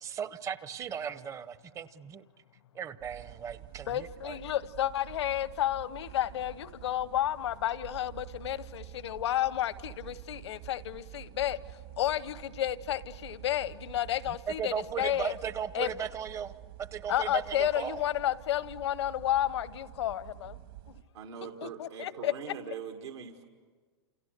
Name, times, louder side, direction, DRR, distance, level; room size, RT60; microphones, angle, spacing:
voice 1, 0.0-2.2 2.7-4.4 14.3-16.5 16.8-18.0, right 8 dB, 20° right, 15 dB, 0.8 m, -37 dB
sound 1, 3.0-21.0, right 14 dB, 55° right, 1.9 m, -48 dB
voice 2, 3.9-11.6 12.0-15.3 15.7-15.9 17.1-20.6 21.6-22.5, left 12 dB, 75° left, 16 dB, 0.9 m, -31 dB
voice 3, 21.1-23.4, right 7 dB, 75° right, 3 dB, 2.2 m, -42 dB
29.0 x 28.5 x 6.7 m, 1.5 s
hypercardioid pair, 135°, 14 cm